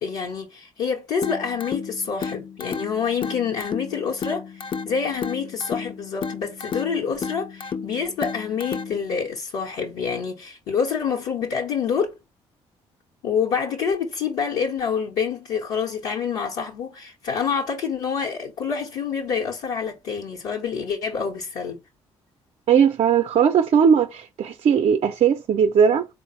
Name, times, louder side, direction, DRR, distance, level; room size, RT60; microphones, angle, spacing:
voice 1, 0.0-12.1 13.2-21.8, left 6 dB, 70° left, 0.8 m, -27 dB
sound 1, 1.2-9.2, left 5 dB, 40° left, 0.5 m, -33 dB
voice 2, 22.7-26.1, right 7 dB, 50° right, 0.5 m, -18 dB
3.9 x 2.0 x 4.3 m
hypercardioid pair, 50°, 14 cm